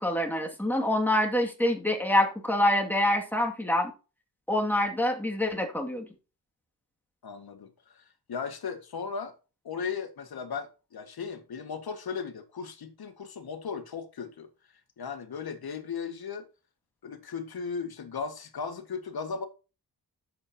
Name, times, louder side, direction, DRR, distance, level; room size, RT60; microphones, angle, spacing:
voice 1, 0.0-3.9 4.5-6.1, left 1 dB, 5° left, 2.2 m, -26 dB
voice 2, 7.2-9.3 9.6-14.5 15.0-16.5 17.0-19.4, left 5 dB, 65° left, 1.8 m, -36 dB
11.0 x 8.0 x 2.9 m
wide cardioid pair, 105°, 40 cm